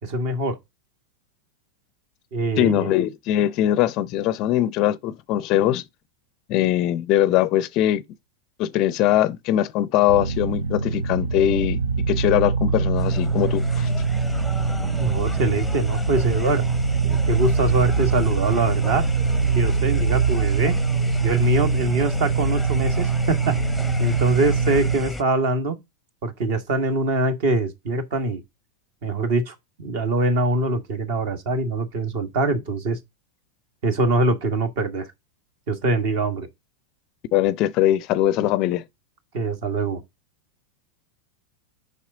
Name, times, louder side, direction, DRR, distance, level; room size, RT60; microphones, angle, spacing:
voice 1, 0.0-0.6 2.3-2.9 14.8-16.6 17.0-19.0 19.5-20.8 21.2-23.6 24.0-25.8 26.2-28.4 29.0-33.0 33.8-35.1 35.7-36.5 39.3-40.0, right 2 dB, 50° right, 1.6 m, -23 dB
voice 2, 2.6-5.8 6.5-8.0 8.6-11.8 12.1-13.9 37.3-38.8, left 13 dB, 40° left, 0.5 m, -21 dB
sound 1, 10.1-25.0, right 5 dB, 65° right, 0.5 m, -23 dB
sound 2, 12.9-25.2, left 1 dB, ahead, 0.8 m, -33 dB
7.1 x 5.5 x 3.8 m
figure-of-eight pair, 90°, 0 cm